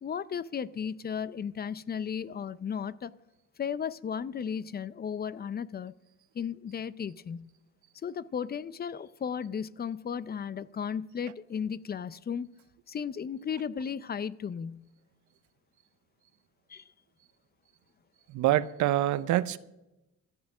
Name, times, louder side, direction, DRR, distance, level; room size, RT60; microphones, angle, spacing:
voice 1, 0.0-3.1 3.6-5.9 6.3-7.5 8.0-12.5 12.9-14.9 16.7-16.8, left 7 dB, 30° left, 0.5 m, -35 dB
voice 2, 18.3-19.6, right 13 dB, 75° right, 0.6 m, -26 dB
14.0 x 8.8 x 6.1 m
cardioid pair, 90°, 30 cm